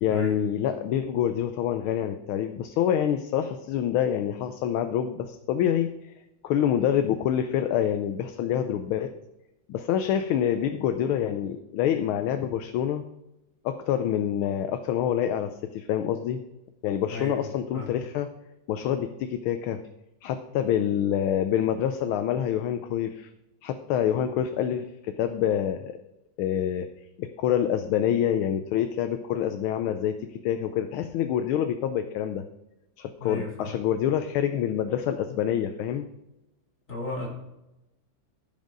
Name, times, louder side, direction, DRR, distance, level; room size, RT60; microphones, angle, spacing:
voice 1, 0.0-6.1 6.4-9.1 9.7-13.0 13.6-16.4 16.8-18.3 18.7-19.8 20.2-23.3 23.6-26.0 26.4-26.9 27.2-32.4 33.0-36.1, left 10 dB, 90° left, 7 dB, 1.5 m, -26 dB
voice 2, 17.1-17.4 17.7-17.9 33.2-33.7 36.9-37.3, left 2 dB, 40° left, -2 dB, 3.0 m, -33 dB
15.5 x 5.4 x 3.8 m, 0.93 s
omnidirectional pair, 2.2 m